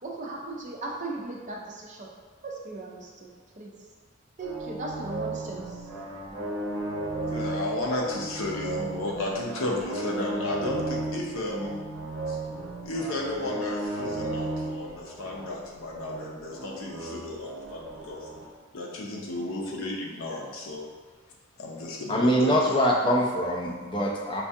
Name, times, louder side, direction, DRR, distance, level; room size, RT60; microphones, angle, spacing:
voice 1, 0.0-2.1 2.4-3.7 4.4-5.9, right 2 dB, 35° right, -2 dB, 0.5 m, -37 dB
sound 1, 4.4-18.4, right 2 dB, 75° right, 0.7 m, -35 dB
voice 2, 7.2-11.8 12.3-12.4 12.8-18.3 18.7-20.8 21.6-22.7, left 2 dB, 80° left, -1 dB, 0.6 m, -33 dB
voice 3, 22.1-24.4, equal, 20° left, -2 dB, 0.4 m, -24 dB
4.5 x 2.3 x 2.6 m, 1.4 s
head